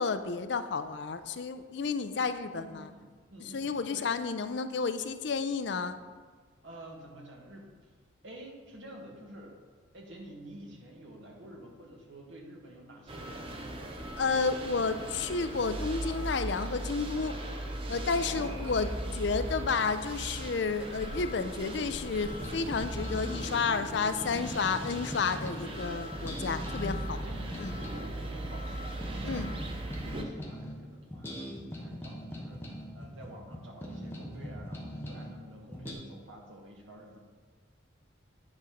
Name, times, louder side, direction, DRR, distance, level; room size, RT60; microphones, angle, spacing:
voice 1, 0.0-2.9 3.4-6.0 14.2-17.4 17.9-27.3 27.6-27.7 29.3-29.5, left 4 dB, 60° left, 10 dB, 0.4 m, -31 dB
voice 2, 2.5-4.1 6.6-7.9 8.2-9.6 9.9-13.9 18.2-18.7 19.0-19.6 20.8-21.0 25.6-26.0 27.2-27.4 27.8-37.2, right 1 dB, 70° right, 0 dB, 1.6 m, -49 dB
sound 1, 13.1-30.2, right 1 dB, 25° right, 0.7 m, -38 dB
sound 2, 22.2-25.7 26.1-30.8 31.1-35.3 35.7-35.9, equal, 10° left, 1.0 m, -41 dB
9.8 x 4.1 x 5.1 m, 1.5 s
head